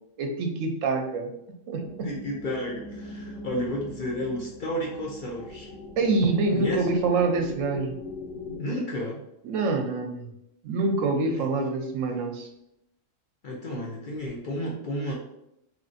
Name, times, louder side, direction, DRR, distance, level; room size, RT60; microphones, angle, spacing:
voice 1, 0.2-1.3 1.7-2.1 6.0-8.0 9.4-10.3 10.6-12.5, right 3 dB, 80° right, 3 dB, 0.9 m, -26 dB
sound 1, 1.7-8.6, left 2 dB, 85° left, 1.2 m, -41 dB
voice 2, 2.0-5.7 6.5-6.9 8.6-9.2 11.3-11.5 13.4-15.1, equal, 65° left, -2 dB, 0.5 m, -32 dB
3.0 x 2.5 x 2.4 m, 0.82 s
omnidirectional pair, 1.4 m